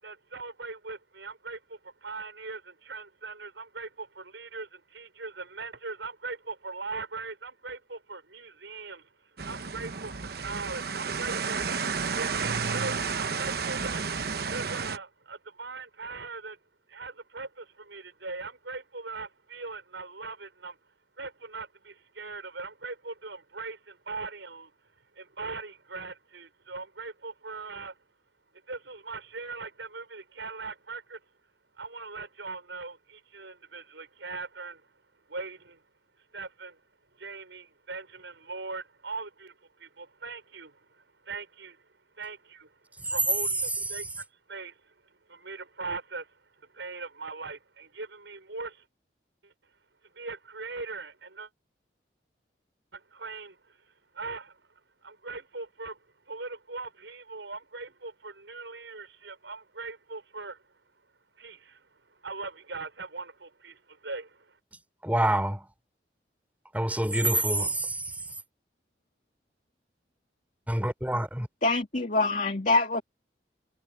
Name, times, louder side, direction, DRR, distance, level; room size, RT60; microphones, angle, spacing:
voice 1, 0.0-11.7 12.1-16.6 16.9-20.8 21.2-24.7 25.1-28.0 28.7-31.2 31.7-34.9 35.3-35.8 36.3-36.8 37.1-41.9 42.1-42.8 43.1-48.8 49.4-49.5 50.1-51.5 52.9-54.6 55.0-56.0 56.3-60.6 61.4-64.6, right 3 dB, 90° right, 6.0 m, -40 dB
sound 1, 9.4-15.0, right 5 dB, 60° right, 1.0 m, -31 dB
voice 2, 65.0-65.7 66.7-68.3 70.7-71.5, right 1 dB, 10° right, 3.8 m, -27 dB
voice 3, 71.6-73.0, left 2 dB, 45° left, 2.3 m, -25 dB
head